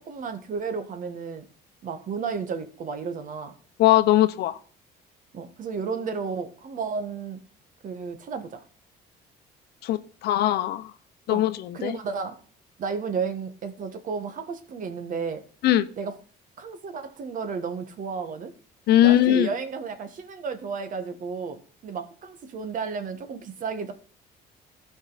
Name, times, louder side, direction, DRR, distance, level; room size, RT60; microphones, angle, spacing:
voice 1, 0.0-1.4 1.8-3.5 5.3-7.4 7.8-8.6 11.3-11.4 11.7-12.4 12.8-15.4 16.0-16.2 16.6-18.5 19.0-23.9, right 5 dB, 50° right, 9 dB, 1.5 m, -32 dB
voice 2, 3.8-4.6 9.8-10.9 11.3-12.0 15.6-15.9 18.9-19.5, left 13 dB, 75° left, 12 dB, 0.8 m, -20 dB
14.5 x 5.3 x 4.1 m, 0.43 s
cardioid pair, 110°, 17 cm